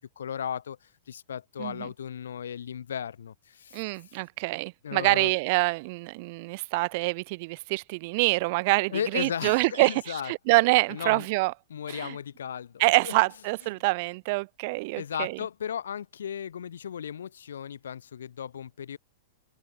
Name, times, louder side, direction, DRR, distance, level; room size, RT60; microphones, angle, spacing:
voice 1, 0.2-0.8 1.1-3.3 4.8-5.3 8.9-10.6 10.9-11.3 11.7-12.7 13.0-13.1 15.0-19.0, left 8 dB, 90° left, 7.9 m, -35 dB
voice 2, 3.7-11.5 11.9-12.1 12.8-15.4, right 25 dB, 50° right, 0.6 m, -26 dB
open air
hypercardioid pair, 135°, 0 cm